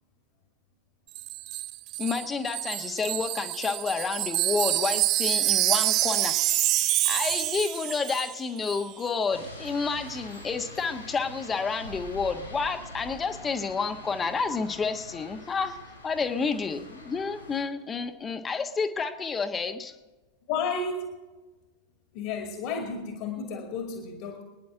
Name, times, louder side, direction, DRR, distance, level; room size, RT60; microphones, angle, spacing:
Wind chime, 1.1-8.4 8.6-8.8, right 16 dB, 40° right, 0.4 m, -27 dB
voice 1, 2.0-6.4 7.0-15.8 16.0-19.9, left 5 dB, 20° left, 7 dB, 1.4 m, -30 dB
sound 1, 9.3-17.6, equal, 80° left, 5.9 m, -45 dB
voice 2, 20.5-21.1 22.1-24.4, left 4 dB, 45° left, 2 dB, 2.3 m, -32 dB
25.0 x 10.5 x 3.8 m, 1.2 s
figure-of-eight pair, 90°, 0 cm